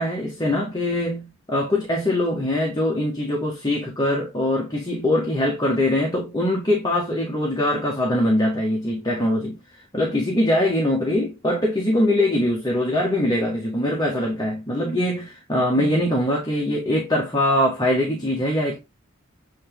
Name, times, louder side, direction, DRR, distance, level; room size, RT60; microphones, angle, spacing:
voice 1, 0.0-9.6 9.9-18.8, left 1 dB, 20° left, 1.6 m, -22 dB
8.4 x 3.6 x 3.6 m
head